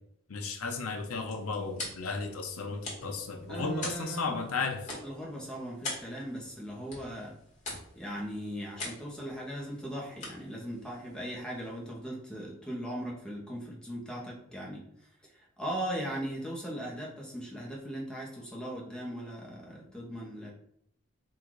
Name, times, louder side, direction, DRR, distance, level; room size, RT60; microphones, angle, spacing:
voice 1, 0.3-4.8, left 4 dB, 90° left, 4 dB, 0.7 m, -34 dB
sound 1, 0.7-11.9, left 2 dB, 35° left, 1.4 m, -45 dB
voice 2, 3.5-4.5 5.0-7.4 8.0-20.5, equal, 5° left, -3 dB, 0.9 m, -39 dB
3.8 x 2.5 x 4.7 m, 0.74 s
head